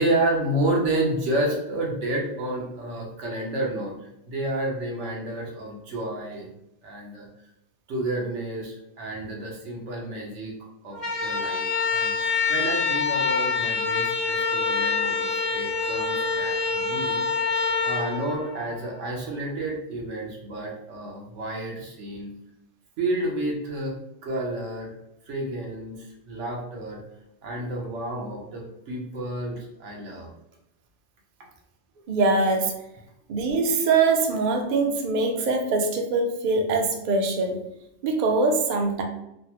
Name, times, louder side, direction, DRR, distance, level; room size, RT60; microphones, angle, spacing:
voice 1, 0.0-3.9 4.3-6.5 6.8-7.3 7.9-10.5 10.8-17.2 17.5-22.3 23.0-24.0 24.2-24.9 25.3-27.0 27.4-30.3, right 1 dB, 85° right, -1 dB, 1.1 m, -30 dB
sound 1, 10.9-19.1, left 4 dB, 50° left, 0.7 m, -26 dB
voice 2, 32.1-32.7 33.3-37.6 38.0-39.0, right 3 dB, 55° right, 3 dB, 0.5 m, -23 dB
3.4 x 2.0 x 2.8 m, 0.83 s
omnidirectional pair, 1.2 m